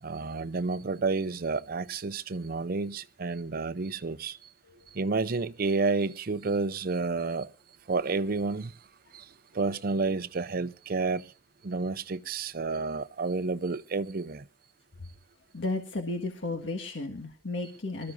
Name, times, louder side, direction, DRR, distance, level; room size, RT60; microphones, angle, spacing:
voice 1, 0.0-4.4 4.9-7.5 7.9-8.8 9.1-11.3 11.6-14.5, right 4 dB, 50° right, 0.6 m, -30 dB
voice 2, 15.5-18.1, left 2 dB, 75° left, 1.7 m, -33 dB
25.0 x 14.0 x 2.6 m
head